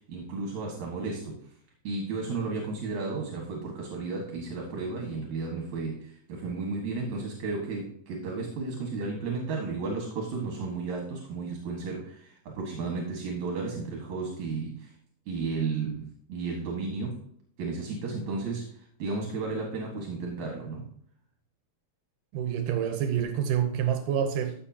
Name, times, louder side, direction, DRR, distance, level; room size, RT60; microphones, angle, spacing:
voice 1, 0.0-1.4 1.8-14.9 15.3-17.2 17.6-20.9, right 4 dB, 65° right, 0 dB, 3.0 m, -33 dB
voice 2, 22.3-24.5, right 9 dB, 80° right, 7 dB, 2.4 m, -27 dB
14.0 x 6.7 x 2.8 m, 0.65 s
omnidirectional pair, 3.7 m